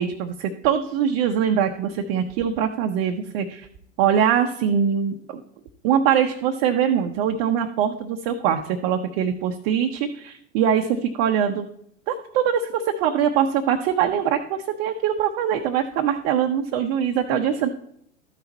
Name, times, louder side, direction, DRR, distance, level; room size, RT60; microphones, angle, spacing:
voice 1, 0.0-3.7 4.0-5.4 5.8-11.7 12.1-17.7, right 8 dB, 40° right, 4 dB, 0.7 m, -23 dB
13.0 x 5.7 x 4.1 m, 0.71 s
figure-of-eight pair, 90°, 36 cm